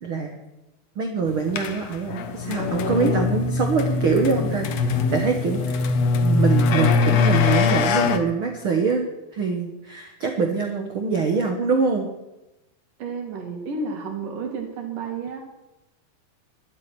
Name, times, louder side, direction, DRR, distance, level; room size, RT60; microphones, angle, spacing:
voice 1, 0.0-0.4 0.9-5.9 6.2-12.1, right 4 dB, 80° right, 3 dB, 1.1 m, -24 dB
sound 1, 1.5-8.2, left 4 dB, 90° left, 1.4 m, -22 dB
voice 2, 13.0-15.4, right 4 dB, 55° right, 2 dB, 4.0 m, -31 dB
12.5 x 8.8 x 9.8 m, 0.97 s
omnidirectional pair, 4.7 m